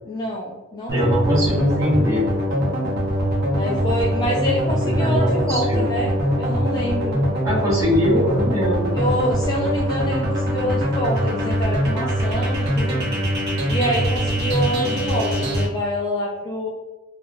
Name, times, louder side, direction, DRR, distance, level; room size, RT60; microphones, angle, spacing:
voice 1, 0.0-1.6 3.5-6.1 6.4-7.2 8.9-13.0 13.7-16.7, equal, 20° left, -4 dB, 0.4 m, -26 dB
voice 2, 0.9-2.3 4.8-5.8 7.4-8.9, equal, 15° right, -7 dB, 1.2 m, -21 dB
sound 1, 0.9-15.7, equal, 50° right, 0.7 m, -22 dB
3.4 x 2.4 x 2.5 m, 1.2 s
head